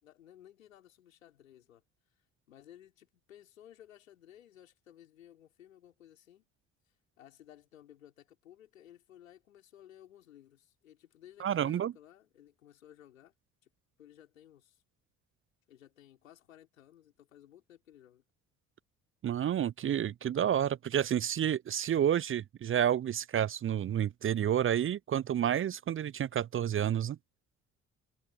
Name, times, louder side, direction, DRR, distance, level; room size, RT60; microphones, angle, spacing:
voice 1, 0.0-1.8 2.5-6.5 6.9-13.3 13.6-13.7 14.0-14.8 15.7-18.2, left 11 dB, 80° left, 4.9 m, -57 dB
voice 2, 11.4-11.9 19.2-27.2, right 10 dB, 30° right, 0.6 m, -30 dB
figure-of-eight pair, 50°, 39 cm